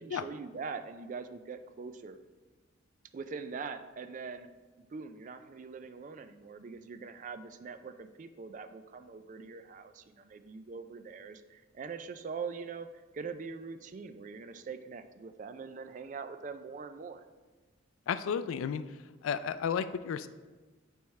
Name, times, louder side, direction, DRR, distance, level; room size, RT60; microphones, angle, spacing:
voice 1, 0.0-2.2 3.1-4.5 4.8-12.9 13.1-17.2, right 5 dB, 40° right, 9 dB, 0.3 m, -43 dB
voice 2, 18.1-18.8 19.2-20.3, left 7 dB, 80° left, 13 dB, 0.3 m, -32 dB
8.6 x 3.5 x 3.2 m, 1.3 s
head